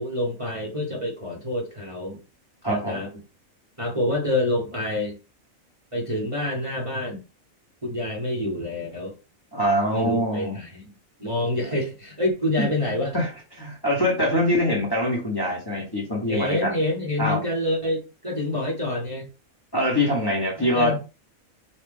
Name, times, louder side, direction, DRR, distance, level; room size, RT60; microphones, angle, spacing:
voice 1, 0.0-2.2 2.6-3.1 3.8-5.1 5.9-7.2 7.8-9.1 9.9-10.9 11.2-13.1 16.3-19.3 20.7-21.0, left 1 dB, 25° right, -3 dB, 1.1 m, -27 dB
voice 2, 2.6-3.0 9.5-10.6 11.6-11.7 12.6-12.7 13.1-16.7 17.2-17.4 19.7-20.9, equal, 20° left, -2 dB, 1.1 m, -24 dB
5.4 x 2.4 x 3.5 m, 0.31 s
omnidirectional pair, 1.4 m